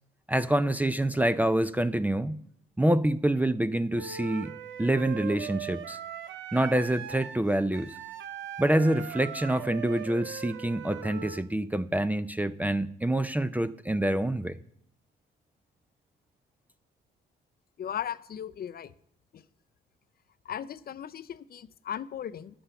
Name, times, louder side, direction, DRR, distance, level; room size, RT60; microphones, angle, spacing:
voice 1, 0.3-2.4 2.8-4.5 4.8-6.0 6.5-7.9 8.6-14.6, right 1 dB, 10° right, 0.5 m, -26 dB
Wind instrument woodwind instrument, 3.9-11.4, right 8 dB, 75° right, 0.8 m, -40 dB
voice 2, 17.8-18.9 19.3-19.4 20.5-22.6, left 9 dB, 50° left, 0.5 m, -37 dB
10.0 x 7.7 x 6.9 m
cardioid pair, 90°, 20 cm